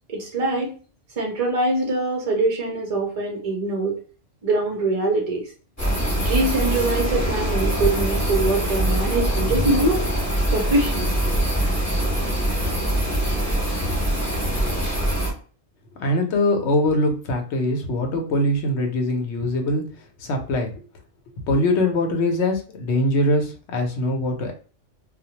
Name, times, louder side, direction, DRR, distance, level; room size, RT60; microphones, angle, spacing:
voice 1, 0.1-0.7 1.2-4.0 4.4-5.5 6.2-10.0 10.5-11.1, right 2 dB, 50° right, -1 dB, 0.4 m, -23 dB
sound 1, 5.8-15.3, right 1 dB, 15° left, 1.0 m, -23 dB
voice 2, 16.0-19.8 20.2-20.7 21.5-24.5, left 1 dB, 65° left, 3 dB, 0.9 m, -22 dB
2.3 x 2.0 x 2.8 m, 0.38 s
omnidirectional pair, 1.3 m